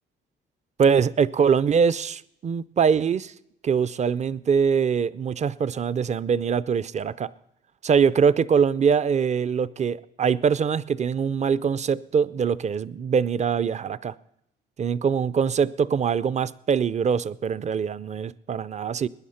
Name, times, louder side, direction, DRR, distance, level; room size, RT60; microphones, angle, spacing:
voice 1, 0.8-3.3 3.6-7.3 7.8-14.1 14.8-19.1, right 6 dB, 35° right, 0.5 m, -23 dB
19.0 x 10.0 x 5.7 m
cardioid pair, 90°, 20 cm